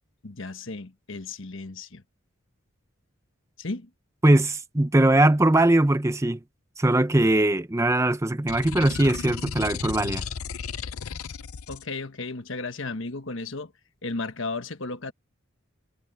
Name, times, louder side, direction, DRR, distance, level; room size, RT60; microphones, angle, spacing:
voice 1, 0.2-2.0 3.6-3.9 11.7-13.7 14.0-15.1, left 3 dB, 60° left, 1.3 m, -34 dB
voice 2, 4.2-6.4 6.8-10.2, right 1 dB, 15° right, 0.6 m, -21 dB
sound 1, 8.5-11.8, left 6 dB, 85° left, 0.6 m, -34 dB
head